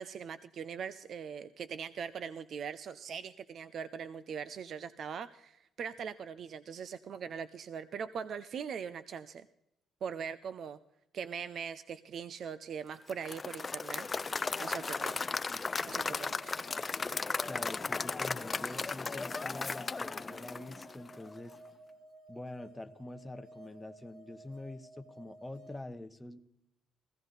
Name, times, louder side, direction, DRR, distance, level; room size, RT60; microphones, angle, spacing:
voice 1, 0.0-9.5 10.0-10.8 11.1-14.3 14.6-15.2 15.9-16.5, right 7 dB, 60° right, 14 dB, 0.5 m, -41 dB
Applause / Crowd, 13.1-21.3, left 4 dB, 30° left, 0.4 m, -36 dB
sound 1, 16.1-25.8, right 2 dB, 80° right, 2.6 m, -55 dB
voice 2, 17.5-21.5 22.3-26.4, left 2 dB, 15° left, 9 dB, 1.0 m, -45 dB
16.0 x 15.0 x 4.0 m, 0.82 s
cardioid pair, 90°, 0 cm